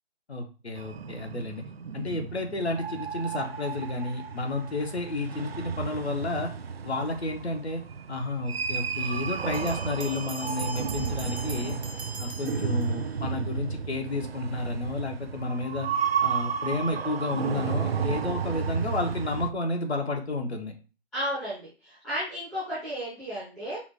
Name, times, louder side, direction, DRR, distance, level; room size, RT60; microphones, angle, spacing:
voice 1, 0.3-1.6 1.9-6.5 6.8-7.8 8.1-11.8 12.2-15.9 16.2-20.7, left 2 dB, 75° left, 3 dB, 1.2 m, -31 dB
sound 1, 0.8-19.5, right 6 dB, 65° right, 0.5 m, -33 dB
sound 2, 9.5-13.3, right 2 dB, 85° right, 1.1 m, -41 dB
voice 2, 21.1-23.8, equal, ahead, -14 dB, 0.6 m, -34 dB
4.8 x 2.4 x 3.5 m, 0.34 s
figure-of-eight pair, 150°, 33 cm